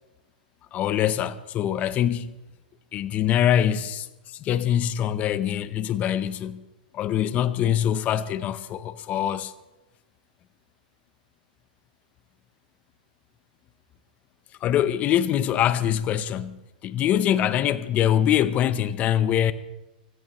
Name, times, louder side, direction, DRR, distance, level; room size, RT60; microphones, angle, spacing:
voice 1, 0.7-2.3 2.9-6.6 6.9-9.5 14.6-19.5, left 10 dB, 30° left, 0.7 m, -24 dB
25.0 x 14.0 x 3.1 m
hypercardioid pair, 130°, 5 cm